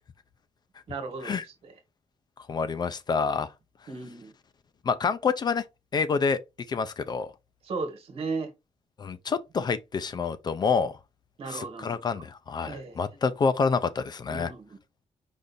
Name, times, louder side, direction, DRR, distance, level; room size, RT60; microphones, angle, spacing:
voice 1, 0.9-1.7 3.9-4.3 7.6-8.5 11.4-12.0 12.7-13.0 14.3-14.8, right 4 dB, 55° right, 1.3 m, -36 dB
voice 2, 2.5-3.5 4.9-5.6 5.9-6.4 6.7-7.3 9.0-10.9 11.5-14.5, left 5 dB, 35° left, 0.4 m, -27 dB
5.1 x 2.5 x 4.0 m
wide cardioid pair, 175°, 12 cm